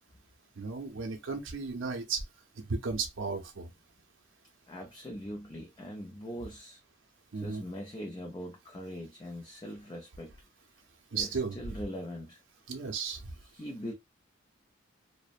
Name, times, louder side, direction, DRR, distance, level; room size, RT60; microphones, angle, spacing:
voice 1, 0.6-2.2 2.8-3.7 7.3-7.6 11.1-11.6 12.7-13.2, right 5 dB, 75° right, 0.6 m, -34 dB
voice 2, 4.7-6.8 7.3-10.3 11.1-12.4 13.4-13.9, equal, 20° left, 0.4 m, -41 dB
2.6 x 2.1 x 2.4 m
head